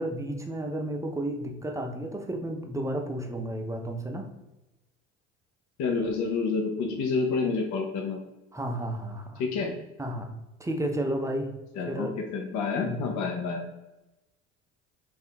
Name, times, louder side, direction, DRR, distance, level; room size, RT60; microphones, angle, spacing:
voice 1, 0.0-4.3 8.5-9.4 10.0-10.3 10.6-11.5 11.9-12.2 12.8-13.1, right 1 dB, 10° right, 3 dB, 0.5 m, -32 dB
voice 2, 5.8-8.2 9.4-9.7 11.8-13.6, left 4 dB, 55° left, 1 dB, 0.7 m, -28 dB
2.7 x 2.5 x 4.1 m, 0.99 s
hypercardioid pair, 65°, 36 cm